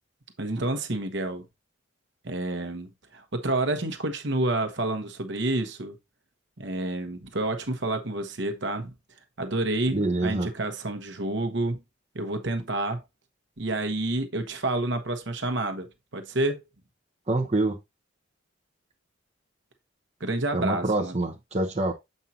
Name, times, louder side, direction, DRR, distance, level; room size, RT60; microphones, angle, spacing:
voice 1, 0.4-1.5 2.2-6.0 6.6-8.9 9.4-11.8 12.1-13.0 13.6-15.9 16.1-16.6 20.2-21.1, right 2 dB, 60° right, 1.1 m, -29 dB
voice 2, 9.9-10.5 17.3-17.8 20.5-21.9, right 2 dB, 30° right, 1.0 m, -26 dB
7.4 x 5.4 x 2.8 m
head